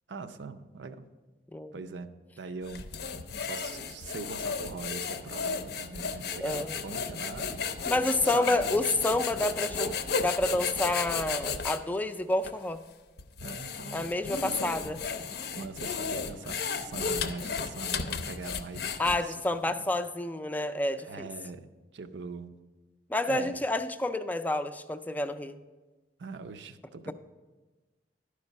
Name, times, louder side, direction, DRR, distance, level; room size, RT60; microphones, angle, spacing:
voice 1, 0.1-1.0 1.7-2.1 2.4-7.7 8.2-8.8 13.4-14.1 14.4-14.7 15.5-19.9 21.0-21.7 21.9-22.6 23.3-23.6 26.2-27.1, right 4 dB, 80° right, 9 dB, 0.5 m, -42 dB
sound 1, 2.7-11.8 12.4-12.5 13.2-19.4, left 5 dB, 60° left, 0.5 m, -34 dB
voice 2, 6.4-6.8 7.9-9.9 10.2-12.8 13.9-15.0 19.0-21.3 23.1-25.5 27.1-27.2, left 2 dB, 10° left, 9 dB, 0.3 m, -29 dB
12.0 x 5.0 x 5.4 m, 1.2 s
head